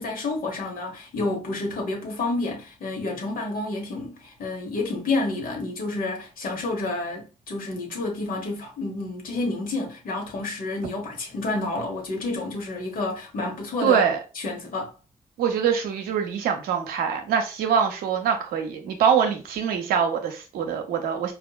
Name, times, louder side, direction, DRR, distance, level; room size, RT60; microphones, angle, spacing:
voice 1, 0.0-14.1 14.4-14.9, left 2 dB, 75° left, 1.1 m, -29 dB
voice 2, 13.8-14.2 15.4-21.3, right 7 dB, 90° right, 0.6 m, -24 dB
4.2 x 2.4 x 2.3 m
supercardioid pair, 40°, 15 cm